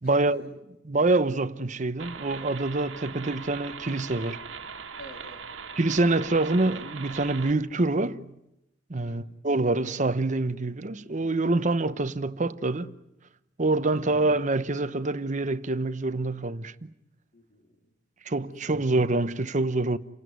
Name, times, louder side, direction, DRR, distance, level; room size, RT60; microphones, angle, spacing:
voice 1, 0.0-0.6 0.8-4.4 5.8-8.3 8.9-12.9 13.6-16.9 18.3-20.0, right 2 dB, 40° right, 0.9 m, -26 dB
sound 1, 2.0-7.5, right 6 dB, 90° right, 1.6 m, -40 dB
voice 2, 5.0-5.5 8.9-9.2 17.3-17.9 18.4-18.8, equal, 50° left, 3.7 m, -50 dB
29.0 x 17.5 x 9.4 m
head